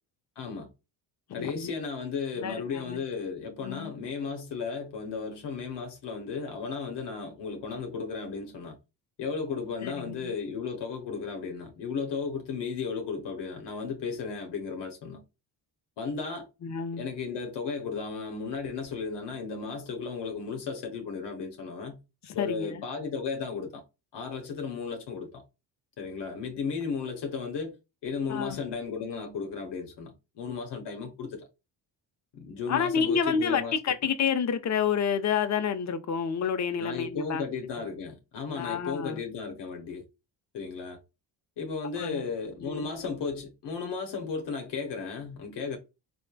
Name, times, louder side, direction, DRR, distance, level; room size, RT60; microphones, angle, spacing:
voice 1, 0.4-0.7 1.3-8.8 9.2-15.2 16.0-16.5 17.0-22.0 22.3-23.8 24.1-25.4 26.0-27.8 28.0-31.5 32.3-33.8 36.8-40.0 40.5-41.0 41.6-45.8, left 5 dB, 65° left, 0.8 m, -35 dB
voice 2, 1.4-1.7 2.4-3.0 3.6-3.9 9.8-10.4 16.6-17.1 22.2-22.8 28.3-28.6 32.7-37.4 38.6-39.2 42.0-42.2 42.6-42.9, left 7 dB, 40° left, 0.5 m, -29 dB
3.1 x 2.1 x 2.2 m
supercardioid pair, 65°, 46 cm